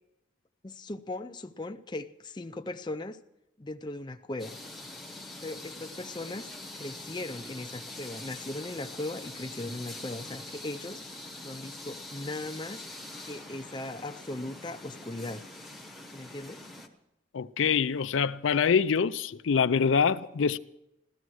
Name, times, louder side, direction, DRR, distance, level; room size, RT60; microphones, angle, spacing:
voice 1, 0.6-3.2 3.6-4.6 5.4-11.0 11.4-12.8 13.3-15.4 16.1-16.6, left 2 dB, 20° left, 0.5 m, -38 dB
sound 1, 4.4-16.9, left 2 dB, ahead, 1.1 m, -44 dB
voice 2, 17.3-20.6, left 6 dB, 85° left, 0.5 m, -25 dB
15.5 x 13.5 x 6.3 m
head